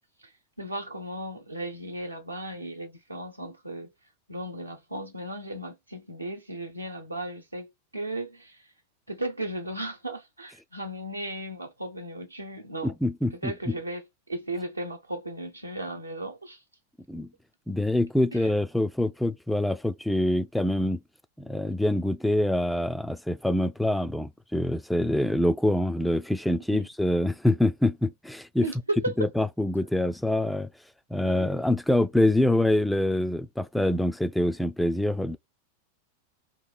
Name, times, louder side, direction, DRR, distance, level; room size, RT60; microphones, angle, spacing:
voice 1, 0.6-3.9 4.3-8.6 9.1-12.9 13.3-16.6 18.3-18.5 28.6-29.1, right 1 dB, 85° right, 0.9 m, -35 dB
voice 2, 12.8-13.7 17.1-17.3 17.7-21.0 21.4-28.7 29.2-30.7 31.1-35.4, left 1 dB, ahead, 0.3 m, -25 dB
2.9 x 2.9 x 4.1 m
figure-of-eight pair, 90°, 0 cm